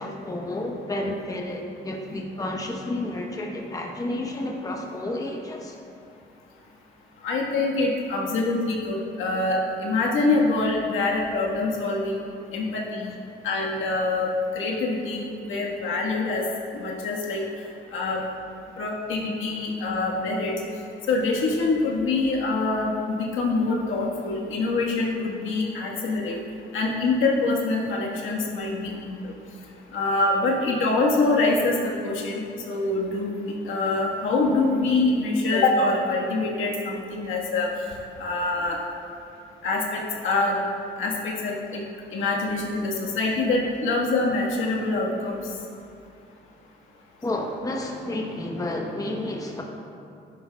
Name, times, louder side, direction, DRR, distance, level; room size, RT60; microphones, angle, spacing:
voice 1, 0.0-5.8 47.2-49.6, left 1 dB, 15° left, 1 dB, 1.0 m, -31 dB
voice 2, 7.2-12.2 12.5-13.2 13.4-16.4 16.7-17.4 17.9-18.2 18.8-20.5 21.1-26.4 26.7-29.3 29.9-37.7 38.2-38.8 39.6-40.6 41.0-41.8 42.1-45.4, left 3 dB, 80° left, -2 dB, 1.5 m, -25 dB
11.0 x 9.4 x 2.3 m, 2.5 s
cardioid pair, 90°, 20 cm